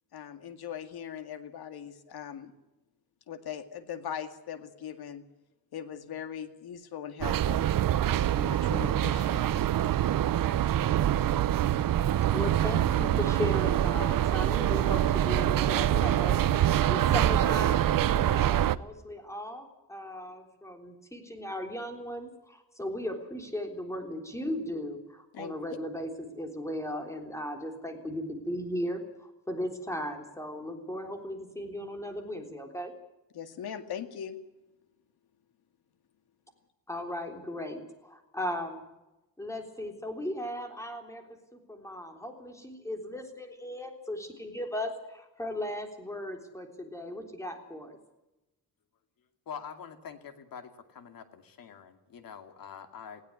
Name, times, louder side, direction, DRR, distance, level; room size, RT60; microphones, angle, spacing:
voice 1, 0.1-2.5 3.3-5.2 5.7-7.7 8.3-9.5 25.3-25.8 33.3-34.4, left 8 dB, 75° left, 9 dB, 2.1 m, -40 dB
sound 1, 7.2-18.8, right 11 dB, 60° right, 0.8 m, -25 dB
voice 2, 12.3-32.9 36.9-38.9 39.4-48.0, left 1 dB, 10° left, 4 dB, 3.6 m, -37 dB
voice 3, 49.5-53.2, left 7 dB, 60° left, 7 dB, 2.6 m, -45 dB
19.5 x 16.5 x 9.7 m, 0.99 s
wide cardioid pair, 145°, 38 cm